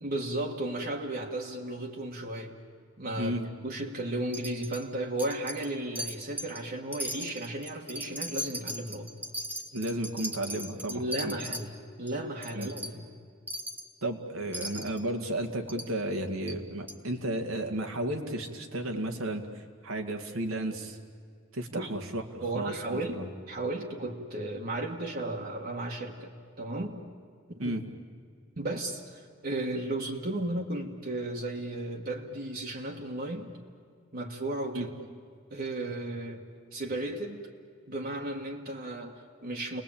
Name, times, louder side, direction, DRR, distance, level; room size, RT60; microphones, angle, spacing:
voice 1, 0.0-2.6 3.0-3.3 3.6-9.1 10.9-13.0 21.7-21.9 22.4-27.1 27.5-27.8 28.6-33.6 34.1-35.1 35.5-37.5 37.9-39.8, right 1 dB, 45° right, 0 dB, 1.8 m, -35 dB
Wind chime, 4.3-4.9 5.2-5.7 6.0-6.6 6.9-11.6 12.1-12.2 12.4-12.9 13.5-13.9 14.5-15.0 15.7-15.9 16.5-16.6 16.9-17.0, equal, 10° right, 1.4 m, -38 dB
voice 2, 9.7-11.4 12.5-12.7 14.0-19.4 19.8-21.0 21.5-23.3 27.6-27.8 34.7-34.9, right 1 dB, 85° right, 4 dB, 2.3 m, -33 dB
30.0 x 20.5 x 8.9 m, 2.1 s
head